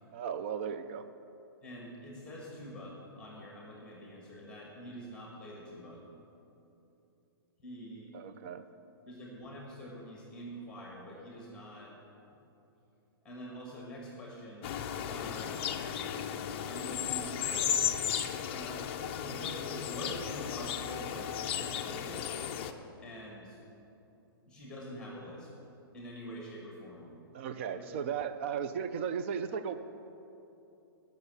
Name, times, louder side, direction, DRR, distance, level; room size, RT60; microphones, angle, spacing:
voice 1, 0.1-1.0 8.1-8.7 15.9-16.0 27.3-29.8, right 7 dB, 30° right, 11 dB, 0.4 m, -36 dB
voice 2, 1.6-6.0 7.6-8.1 9.1-11.9 13.2-14.7 15.1-15.5 16.6-17.9 18.5-18.8 19.1-22.3 23.0-23.6 24.5-25.5 25.9-27.1 27.7-27.8, equal, 5° left, -3 dB, 1.7 m, -45 dB
sound 1, 14.6-22.7, left 9 dB, 25° left, 0.5 m, -35 dB
15.0 x 6.5 x 6.9 m, 2.9 s
hypercardioid pair, 170°, 13 cm